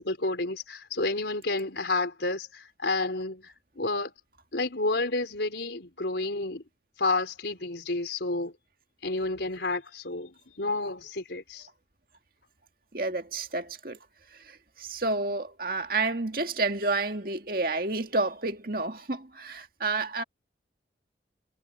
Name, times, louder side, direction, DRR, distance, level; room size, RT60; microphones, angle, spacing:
voice 1, 0.0-4.1 4.5-6.6 7.0-8.5 9.0-11.7, left 2 dB, 75° left, 4.2 m, -30 dB
voice 2, 12.9-14.0 14.5-20.2, right 3 dB, 50° right, 2.1 m, -30 dB
head